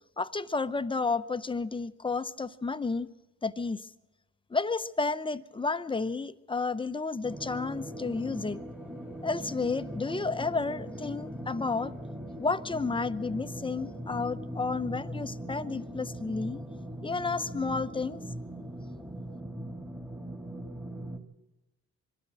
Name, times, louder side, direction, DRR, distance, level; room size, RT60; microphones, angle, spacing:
voice 1, 0.2-3.1 3.4-3.9 4.5-8.6 9.2-11.9 12.4-16.6 17.0-18.2, left 4 dB, 15° left, 13 dB, 0.8 m, -31 dB
sound 1, 7.2-21.2, right 1 dB, 5° right, 2.0 m, -40 dB
23.0 x 13.0 x 8.7 m, 1.0 s
cardioid pair, 90°, 30 cm